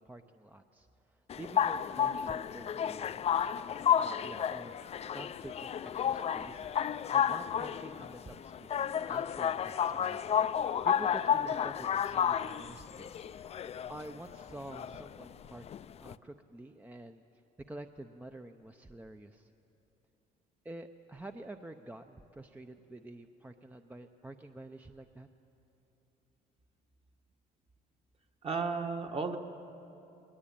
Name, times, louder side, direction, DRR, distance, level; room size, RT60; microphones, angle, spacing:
voice 1, 0.0-3.3 4.0-6.7 7.1-10.2 10.6-13.5 13.9-15.6 16.0-17.4 17.7-19.5 20.6-25.3, right 2 dB, 10° right, 7 dB, 0.6 m, -48 dB
sound 1, 1.3-16.1, left 9 dB, 40° left, 0.5 m, -32 dB
voice 2, 28.4-29.4, right 4 dB, 35° right, 5 dB, 1.5 m, -33 dB
21.0 x 18.5 x 8.9 m, 2.9 s
cardioid pair, 110°, 17 cm